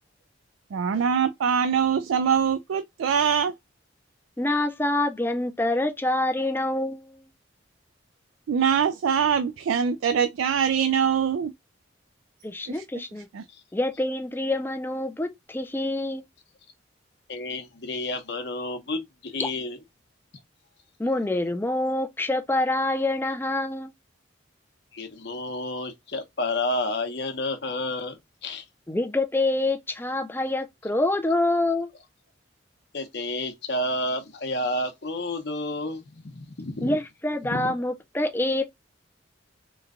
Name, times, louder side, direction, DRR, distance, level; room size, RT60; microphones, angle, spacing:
voice 1, 0.7-3.5 8.5-11.5 12.7-12.8 13.3-13.4, right 7 dB, 90° right, 0.4 m, -23 dB
voice 2, 4.4-7.2 12.4-13.3 13.7-16.2 19.4-19.5 21.0-23.9 28.9-31.9 36.8-38.6, left 2 dB, 10° left, 0.4 m, -26 dB
voice 3, 17.3-19.8 24.9-28.7 32.9-37.0 37.5-37.7, left 2 dB, 55° left, 0.8 m, -30 dB
3.1 x 2.2 x 3.6 m
head